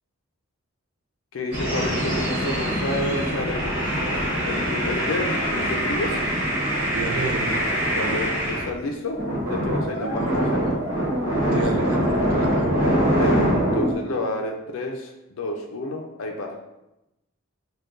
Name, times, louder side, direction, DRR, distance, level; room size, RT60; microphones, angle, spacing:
voice 1, 1.3-3.8 4.5-6.2 7.9-9.2 9.4-10.8 11.5-11.6 13.0-16.5, left 2 dB, 80° left, 2 dB, 0.4 m, -30 dB
sound 1, 1.5-8.7 9.1-13.9, equal, 50° right, 1.3 m, -24 dB
voice 2, 6.9-7.6 7.9-8.3 10.0-10.8 11.5-12.9, right 3 dB, 90° right, 4 dB, 0.4 m, -32 dB
6.2 x 2.2 x 2.5 m, 0.92 s
head